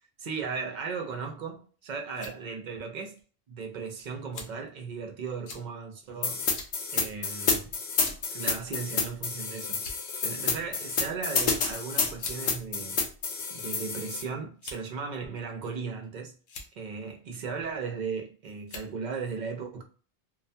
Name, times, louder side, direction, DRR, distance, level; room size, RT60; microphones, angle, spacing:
voice 1, 0.2-3.2 3.5-6.5 6.9-7.7 8.3-9.8 10.2-13.0 13.5-16.3 16.8-19.8, right 5 dB, 55° right, 0.5 m, -36 dB
sound 1, 1.8-2.4 3.2-3.3 4.3-4.7 5.5-5.6 6.5-6.7 7.1-7.2 8.0-8.3 9.2-9.4 9.7-10.2 11.3-11.5 12.2-12.4 13.3-13.8 14.6-15.0 15.7-16.1 16.4-16.7 17.9-18.2 18.7-18.9, left 3 dB, 80° left, 0.9 m, -43 dB
sound 2, 6.2-14.2, left 5 dB, 55° left, 0.6 m, -29 dB
2.3 x 2.1 x 2.6 m
omnidirectional pair, 1.1 m